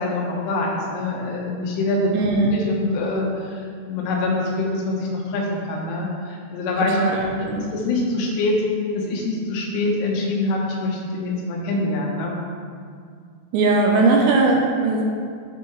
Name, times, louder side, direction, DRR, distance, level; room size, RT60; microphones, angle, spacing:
voice 1, 0.0-2.1 2.5-7.3 7.7-8.6 8.9-12.4, left 2 dB, 85° left, -2 dB, 3.6 m, -24 dB
voice 2, 2.1-2.6 7.0-7.7 13.5-15.0, right 3 dB, 80° right, -1 dB, 2.8 m, -19 dB
12.5 x 4.7 x 3.1 m, 2.1 s
omnidirectional pair, 5.5 m